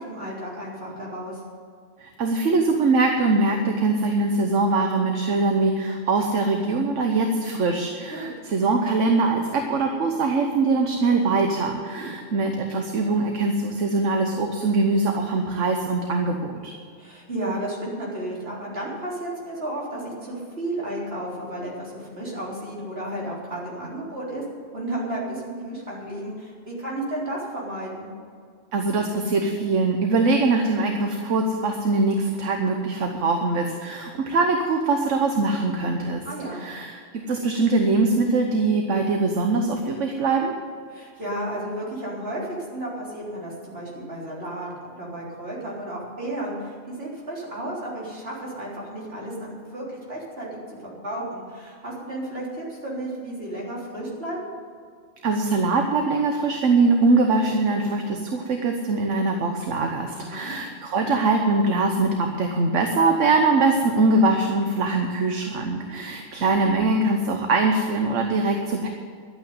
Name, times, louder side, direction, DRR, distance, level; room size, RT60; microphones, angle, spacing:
voice 1, 0.0-1.4 8.1-8.3 11.9-12.1 17.0-24.4 24.7-28.1 36.2-36.7 40.9-54.5 60.1-60.6 65.9-66.1, right 1 dB, 50° right, -5 dB, 4.0 m, -33 dB
voice 2, 2.0-16.7 28.7-36.2 36.5-40.5 55.2-68.9, right 3 dB, 70° right, 3 dB, 1.4 m, -22 dB
12.0 x 8.7 x 9.5 m, 2.2 s
omnidirectional pair, 1.3 m